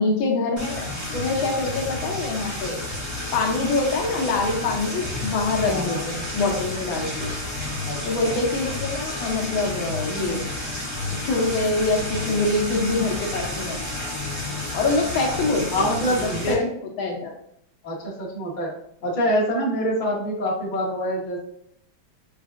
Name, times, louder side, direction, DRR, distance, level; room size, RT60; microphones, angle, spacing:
voice 1, 0.0-2.8 3.3-7.3 8.0-10.5 11.1-13.8 14.7-16.6 17.0-17.3, left 3 dB, 75° left, 1 dB, 1.3 m, -25 dB
sound 1, 0.6-16.5, left 2 dB, 10° right, 1.1 m, -31 dB
voice 2, 5.7-6.0 7.8-8.0 8.2-8.3 15.2-15.4 15.7-16.6 17.8-18.7 19.0-21.4, equal, 40° left, -4 dB, 0.7 m, -25 dB
5.5 x 2.4 x 2.4 m, 0.72 s
omnidirectional pair, 2.4 m